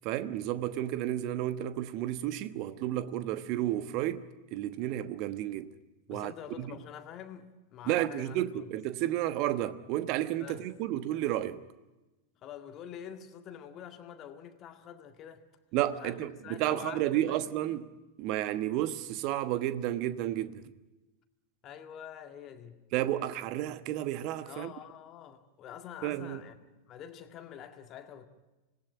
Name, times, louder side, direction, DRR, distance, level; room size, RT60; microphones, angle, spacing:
voice 1, 0.0-5.7 6.1-6.3 6.6-6.7 7.9-11.6 15.7-17.9 18.2-20.6 22.9-24.7 26.0-26.4, right 13 dB, 40° right, 1.2 m, -32 dB
voice 2, 6.1-8.7 10.4-10.7 12.4-15.4 16.0-17.6 21.6-22.8 24.4-26.6 26.9-28.3, left 9 dB, 30° left, 2.0 m, -46 dB
26.0 x 18.5 x 9.6 m
figure-of-eight pair, 90°, 0 cm